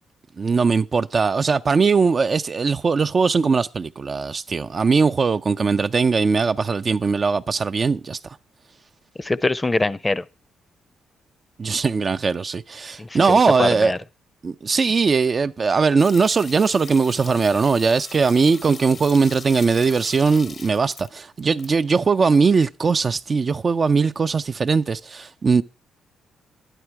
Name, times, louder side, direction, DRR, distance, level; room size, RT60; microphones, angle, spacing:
voice 1, 0.4-8.4 11.6-13.9 14.4-25.6, right 5 dB, 45° right, 0.5 m, -20 dB
voice 2, 9.2-10.2 13.0-14.0, left 2 dB, 20° left, 0.7 m, -23 dB
sound 1, 16.0-21.7 21.9-22.0, left 5 dB, 50° left, 0.9 m, -40 dB
11.5 x 10.0 x 4.7 m
supercardioid pair, 65°, 0 cm